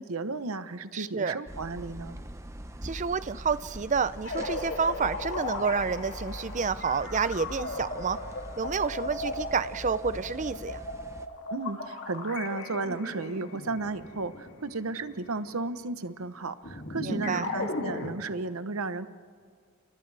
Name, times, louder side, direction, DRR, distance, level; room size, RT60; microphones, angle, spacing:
voice 1, 0.0-2.2 11.5-19.1, right 3 dB, 90° right, 12 dB, 0.9 m, -34 dB
voice 2, 0.9-1.4 2.8-8.2 8.6-10.8 17.0-17.5, right 5 dB, 35° right, 15 dB, 0.5 m, -29 dB
sound 1, 1.5-11.3, equal, 15° right, 0.9 m, -43 dB
sound 2, 4.2-15.6 16.6-18.1, left 2 dB, 60° left, 2.7 m, -37 dB
29.5 x 29.0 x 3.4 m, 2.1 s
head